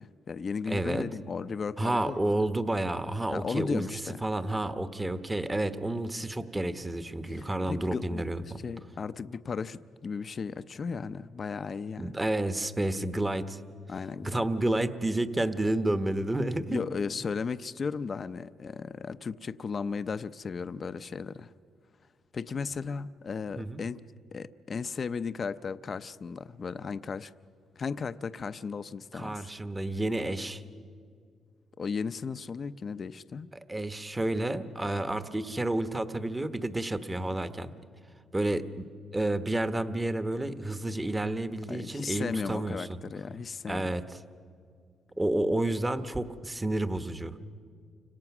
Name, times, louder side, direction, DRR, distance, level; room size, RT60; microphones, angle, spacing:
voice 1, 0.0-2.2 3.3-4.2 7.3-8.3 8.6-12.2 13.9-14.3 16.7-21.5 22.3-24.0 24.3-27.3 27.8-29.4 31.8-33.5 41.7-43.9, left 5 dB, 40° left, 12 dB, 0.7 m, -35 dB
voice 2, 0.7-1.0 1.8-3.8 4.2-8.6 12.0-13.6 14.2-16.8 23.6-23.8 29.1-30.6 33.7-37.7 38.3-38.9 39.1-43.0 43.7-44.2 45.2-47.4, right 1 dB, 15° right, 10 dB, 1.2 m, -30 dB
29.5 x 26.0 x 6.1 m, 2.2 s
cardioid pair, 90°, 0 cm